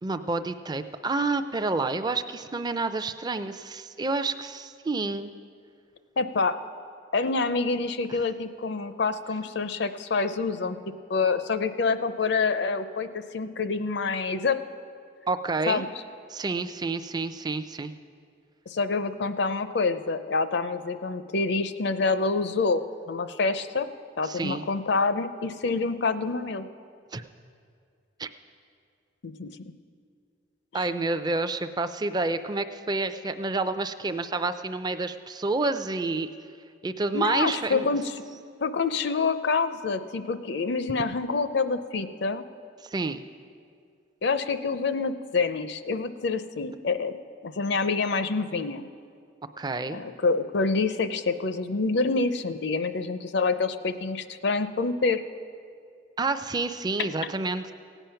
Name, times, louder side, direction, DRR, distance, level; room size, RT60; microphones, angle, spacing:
voice 1, 0.0-5.3 8.1-8.2 15.3-15.8 16.3-17.9 24.2-24.6 27.1-27.2 28.2-28.3 30.7-36.3 36.8-37.9 42.8-43.2 49.6-50.0 56.2-57.7, right 3 dB, 20° right, 10 dB, 0.4 m, -29 dB
voice 2, 6.2-6.6 7.1-10.8 11.1-14.6 15.7-15.9 18.7-23.9 24.2-26.7 29.2-29.5 30.7-30.9 37.1-38.1 38.6-42.4 44.2-47.1 47.4-48.8 49.9-55.2, left 4 dB, 65° left, 11 dB, 0.6 m, -27 dB
16.5 x 9.1 x 5.7 m, 2.3 s
head